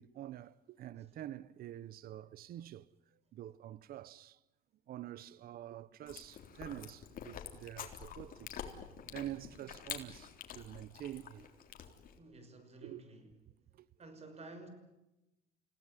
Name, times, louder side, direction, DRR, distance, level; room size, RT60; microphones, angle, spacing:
voice 1, 0.0-4.4 4.9-8.5 9.1-11.5 12.8-13.0 13.7-13.9, right 12 dB, 60° right, 0.9 m, -47 dB
Chewing mastication, 6.1-12.2, left 8 dB, 55° left, 3.7 m, -48 dB
voice 2, 12.2-13.3 14.0-14.7, right 2 dB, 40° right, 5.9 m, -52 dB
30.0 x 17.0 x 9.9 m
cardioid pair, 110°, 17 cm